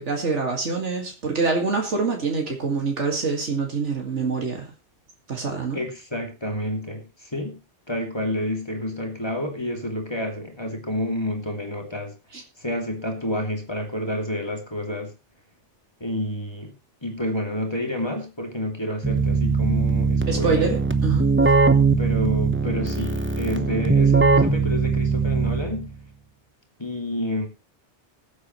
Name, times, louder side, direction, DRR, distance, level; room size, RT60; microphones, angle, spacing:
voice 1, 0.0-4.7 5.3-5.8 12.3-12.4 20.3-21.5, right 4 dB, 85° right, 2 dB, 2.4 m, -25 dB
voice 2, 5.7-7.6 7.9-12.1 12.6-15.1 16.0-16.7 17.0-20.6 22.0-25.9 26.8-27.5, left 1 dB, 20° left, 2 dB, 2.9 m, -29 dB
Keyboard (musical), 19.0-25.9, right 4 dB, 10° right, 0.8 m, -20 dB
20.0 x 8.3 x 3.1 m, 0.30 s
omnidirectional pair, 1.2 m